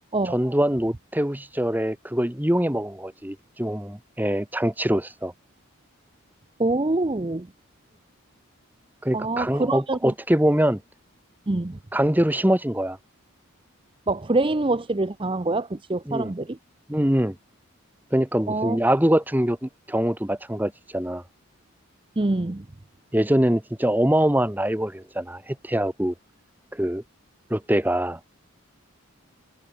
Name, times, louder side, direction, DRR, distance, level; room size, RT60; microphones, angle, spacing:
voice 1, 0.3-5.3 9.0-10.8 11.9-13.0 16.1-16.3 16.9-17.4 18.1-21.2 23.1-26.1 26.7-27.0 27.5-28.2, right 1 dB, 10° right, 1.1 m, -23 dB
voice 2, 6.6-7.5 9.1-10.1 11.5-11.8 14.1-16.6 18.5-18.8 22.2-22.7, right 2 dB, 25° right, 0.6 m, -25 dB
head